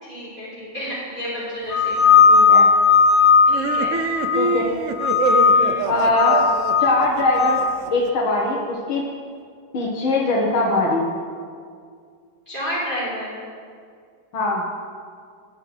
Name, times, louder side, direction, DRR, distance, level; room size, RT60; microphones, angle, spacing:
voice 1, 0.0-2.2 2.5-2.6 3.5-3.9 5.5-5.9 12.5-13.4, equal, 25° right, -11 dB, 3.6 m, -31 dB
sound 1, 1.7-4.6 5.0-5.7 6.1-7.7, left 5 dB, 45° left, 0.6 m, -16 dB
voice 2, 2.3-2.7 4.4-4.7 5.9-6.5 6.8-7.6 7.9-9.1 9.7-11.1 14.3-14.6, left 2 dB, 80° left, -4 dB, 2.1 m, -21 dB
sound 2, 3.5-8.1, right 5 dB, 75° right, 0.7 m, -26 dB
20.5 x 8.8 x 3.3 m, 2.2 s
omnidirectional pair, 2.2 m